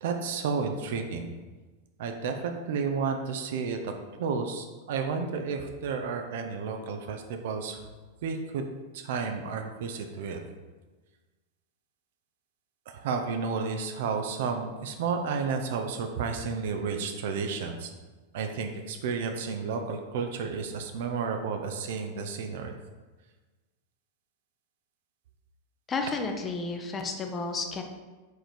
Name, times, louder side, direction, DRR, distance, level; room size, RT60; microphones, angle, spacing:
voice 1, 0.0-1.3 2.0-3.9 4.2-7.8 8.2-8.7 8.9-10.4 12.9-17.9 18.3-22.7, right 5 dB, 55° right, 5 dB, 0.6 m, -32 dB
voice 2, 25.9-27.8, left 4 dB, 20° left, 4 dB, 0.7 m, -32 dB
4.7 x 4.3 x 5.1 m, 1.3 s
figure-of-eight pair, 90°, 0 cm